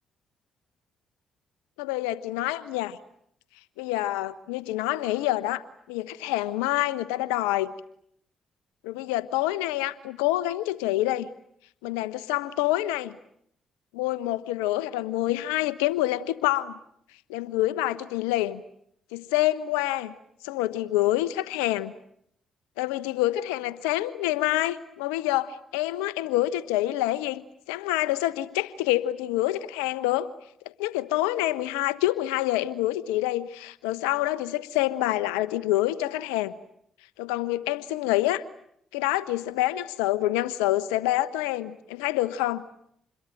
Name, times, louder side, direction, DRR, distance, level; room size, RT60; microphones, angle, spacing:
voice 1, 1.8-3.0 3.8-5.6 5.9-7.7 8.8-11.3 11.8-13.2 13.9-16.8 17.3-18.6 19.1-20.1 20.4-21.9 22.8-27.4 27.7-30.3 30.8-36.5 37.2-38.4 38.9-42.6, left 15 dB, 85° left, 16 dB, 1.1 m, -27 dB
27.0 x 22.0 x 9.2 m, 0.72 s
hypercardioid pair, 45°, 0 cm